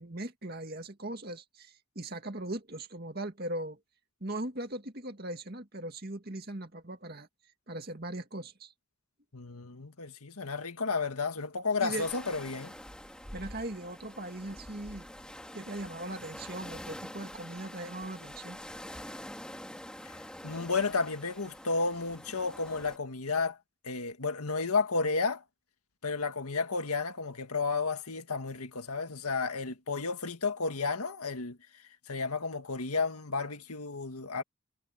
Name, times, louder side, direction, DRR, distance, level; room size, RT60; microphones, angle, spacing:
voice 1, 0.0-3.8 4.2-7.3 7.7-8.7 11.8-12.1 13.3-15.1 15.5-18.6, right 1 dB, 45° right, 2.3 m, -39 dB
voice 2, 9.3-12.7 20.4-23.6 23.8-25.4 26.0-31.6 32.1-34.4, left 4 dB, 90° left, 1.9 m, -32 dB
sound 1, 11.9-23.0, equal, 5° left, 2.1 m, -46 dB
head